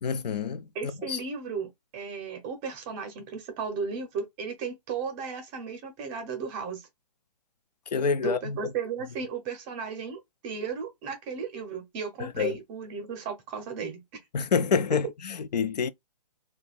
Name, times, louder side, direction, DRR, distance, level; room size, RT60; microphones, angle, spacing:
voice 1, 0.0-0.6 1.1-1.2 7.9-8.6 12.2-12.6 14.3-15.9, left 6 dB, 80° left, 0.5 m, -27 dB
voice 2, 0.7-6.9 8.2-14.0, right 5 dB, 20° right, 0.6 m, -35 dB
2.7 x 2.3 x 4.0 m
hypercardioid pair, 155°, 21 cm